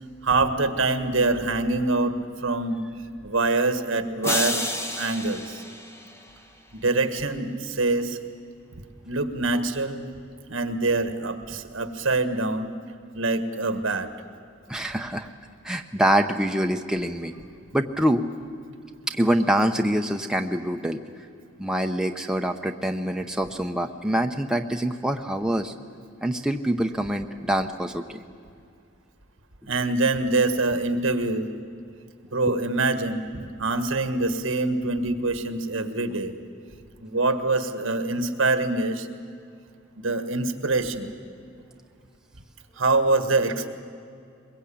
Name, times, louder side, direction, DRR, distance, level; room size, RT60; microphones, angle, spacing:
voice 1, 0.2-2.1 2.4-2.8 3.2-4.6 5.0-5.6 6.7-8.2 9.0-10.0 10.5-12.7 13.1-14.1 29.7-31.5 32.3-33.2 33.6-36.3 37.0-39.1 40.0-41.1 42.8-43.7, right 3 dB, 65° right, 9 dB, 1.6 m, -24 dB
sound 1, 4.2-6.6, left 1 dB, 15° left, 1.2 m, -30 dB
voice 2, 14.7-15.3 15.6-17.4 17.7-18.3 19.1-21.0 21.6-25.7 26.2-28.2 32.5-32.6, right 1 dB, 5° right, 4 dB, 0.7 m, -25 dB
22.0 x 22.0 x 8.6 m, 2.4 s
head